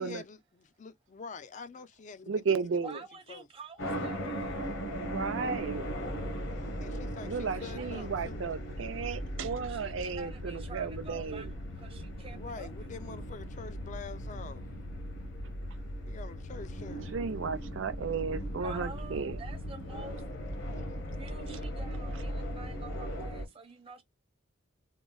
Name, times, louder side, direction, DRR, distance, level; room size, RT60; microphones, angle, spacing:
voice 1, 0.0-3.0 3.3-3.5 6.8-8.5 12.3-14.7 16.1-17.1, left 4 dB, 40° left, 0.4 m, -46 dB
voice 2, 2.3-3.0 5.0-5.9 7.3-11.5 17.1-19.4, right 5 dB, 80° right, 0.5 m, -34 dB
voice 3, 2.8-4.6 7.7-8.0 9.7-12.9 18.6-20.2 21.2-24.0, right 3 dB, 30° right, 0.9 m, -48 dB
sound 1, 3.8-23.5, equal, 75° left, 1.0 m, -38 dB
3.8 x 2.0 x 2.3 m
head